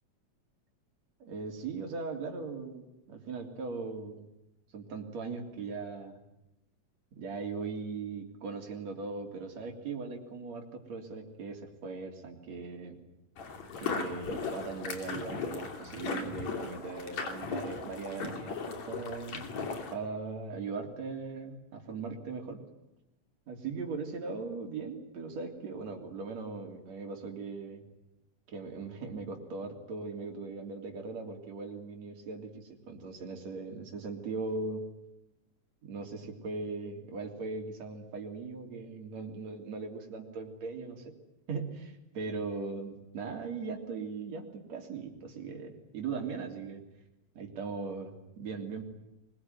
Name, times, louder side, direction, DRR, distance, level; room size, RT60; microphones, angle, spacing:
voice 1, 1.2-4.3 4.7-6.2 7.1-13.0 13.8-19.5 19.9-22.6 23.5-27.9 28.5-34.9 35.8-41.2 41.5-46.8 47.4-48.8, right 4 dB, 65° right, 3 dB, 4.4 m, -39 dB
sound 1, 13.4-19.9, left 4 dB, 70° left, 4.0 m, -37 dB
23.5 x 22.0 x 9.4 m, 0.89 s
omnidirectional pair, 3.3 m